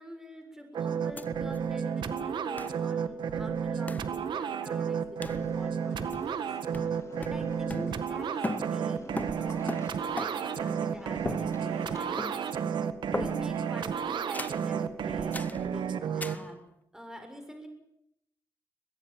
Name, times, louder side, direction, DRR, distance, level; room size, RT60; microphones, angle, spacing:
voice 1, 0.0-9.7 10.1-12.7 13.1-16.6 16.9-17.7, equal, 5° right, 6 dB, 6.8 m, -46 dB
sound 1, 0.7-16.3, right 7 dB, 85° right, 1.7 m, -32 dB
sound 2, 1.2-1.3 1.5-1.6 2.6-2.8 3.9-4.1 5.2-5.5 6.1-6.5 6.7-8.2 8.4-10.6 11.3-11.9 12.2-12.6 13.1-13.7 14.3-14.7 15.3-15.6 16.2-16.5, left 2 dB, 20° left, 1.4 m, -38 dB
sound 3, 5.2-12.6, left 3 dB, 40° left, 3.9 m, -51 dB
22.5 x 22.0 x 7.7 m, 0.76 s
cardioid pair, 80°, 8 cm